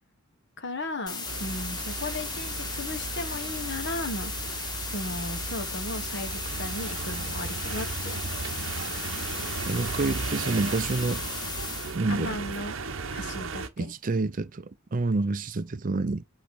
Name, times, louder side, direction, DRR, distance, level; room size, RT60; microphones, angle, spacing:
voice 1, 0.6-4.3 4.9-8.3 12.1-12.8 13.1-13.9, left 2 dB, 55° left, 1.3 m, -36 dB
sound 1, 1.1-12.0, left 4 dB, 20° left, 0.9 m, -36 dB
sound 2, 1.3-13.7, right 4 dB, 60° right, 0.9 m, -36 dB
voice 2, 9.7-11.2 11.9-12.4 13.8-16.2, right 3 dB, 40° right, 0.5 m, -28 dB
8.2 x 3.1 x 4.7 m
head